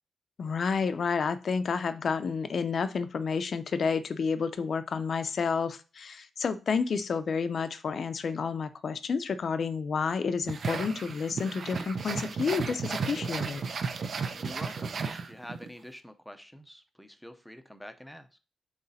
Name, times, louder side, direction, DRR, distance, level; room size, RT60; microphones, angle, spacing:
voice 1, 0.4-13.6, left 5 dB, 45° left, 11 dB, 0.5 m, -30 dB
sound 1, 10.5-15.7, right 5 dB, 50° right, 0.5 m, -34 dB
voice 2, 14.3-18.4, equal, ahead, 8 dB, 0.6 m, -46 dB
7.8 x 3.2 x 4.2 m, 0.34 s
wide cardioid pair, 175°, 0 cm